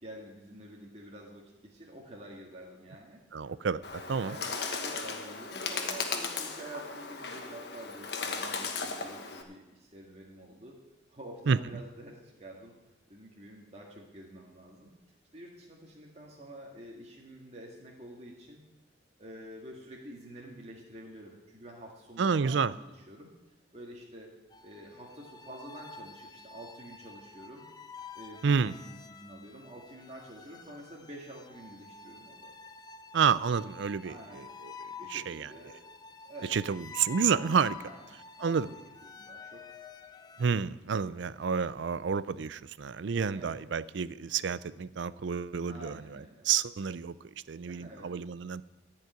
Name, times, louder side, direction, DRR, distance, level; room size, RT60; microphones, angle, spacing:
voice 1, 0.0-3.2 4.2-4.5 4.8-10.8 11.1-12.7 13.1-14.9 15.3-18.6 19.2-23.3 23.7-24.3 24.6-27.6 28.1-32.5 34.0-34.5 34.9-35.8 36.3-36.6 37.8-38.0 38.4-39.8 43.3-43.6 45.7-46.5 47.6-48.1, right 1 dB, 35° right, -2 dB, 1.8 m, -48 dB
voice 2, 3.3-4.4 11.5-11.6 22.2-22.7 28.4-28.7 33.1-35.5 36.5-37.8 38.4-38.7 40.4-47.1 47.5-48.6, right 6 dB, 70° right, 17 dB, 0.4 m, -30 dB
Bird, 3.8-9.4, left 4 dB, 60° left, 1.3 m, -36 dB
sound 1, 24.5-40.5, left 5 dB, 20° left, 0.5 m, -49 dB
14.0 x 5.6 x 9.1 m, 1.0 s
head